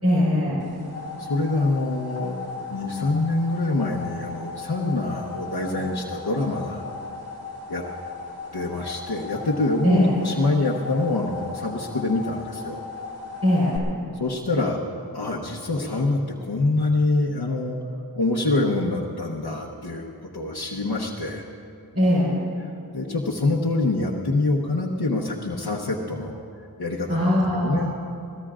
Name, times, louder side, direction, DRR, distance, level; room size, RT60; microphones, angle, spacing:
voice 1, 0.0-0.6 9.8-10.1 13.4-13.8 21.9-22.3 27.1-27.9, equal, 40° right, -8 dB, 4.3 m, -20 dB
sound 1, 0.6-13.8, left 4 dB, 80° right, 1.9 m, -37 dB
voice 2, 1.2-2.4 2.7-6.8 7.7-7.8 8.5-12.8 14.2-14.8 15.1-17.8 18.1-20.1 20.3-21.5 22.9-26.4 26.8-27.3 27.6-27.9, left 2 dB, 85° left, -3 dB, 1.1 m, -25 dB
24.0 x 17.5 x 2.5 m, 2.6 s
wide cardioid pair, 60°, 37 cm